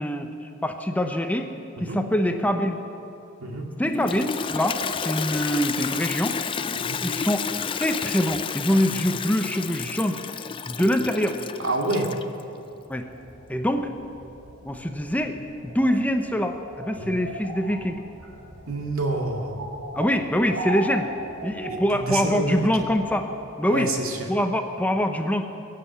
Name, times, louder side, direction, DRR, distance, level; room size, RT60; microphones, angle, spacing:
voice 1, 0.0-1.5 1.8-2.8 3.8-6.4 7.0-7.4 7.8-10.2 10.7-11.4 12.9-13.1 13.5-13.9 14.6-15.4 15.6-18.0 19.9-21.1 21.4-23.3 23.6-23.9 24.3-25.5, equal, 5° left, 6 dB, 0.7 m, -24 dB
Toilet flush, 3.8-12.4, left 6 dB, 25° left, 0.4 m, -31 dB
voice 2, 11.6-12.1 17.0-17.2 18.7-19.6 21.7-22.9 23.7-24.3, right 2 dB, 85° right, 1 dB, 2.2 m, -28 dB
sound 1, 12.7-23.1, right 1 dB, 65° right, 2.5 m, -38 dB
22.0 x 7.7 x 8.4 m, 2.8 s
head